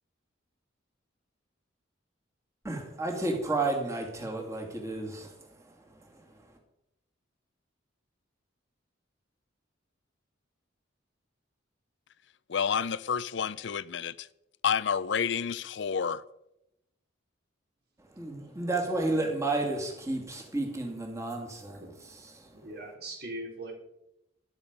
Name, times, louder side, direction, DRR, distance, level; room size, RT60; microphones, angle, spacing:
voice 1, 2.6-6.3 18.1-21.8 22.3-22.6, right 2 dB, 15° right, 2.4 m, -32 dB
voice 2, 12.5-14.3 14.6-16.2, left 7 dB, 60° left, 0.5 m, -29 dB
voice 3, 22.5-23.7, equal, 55° right, 4.6 m, -40 dB
13.0 x 12.5 x 5.3 m
head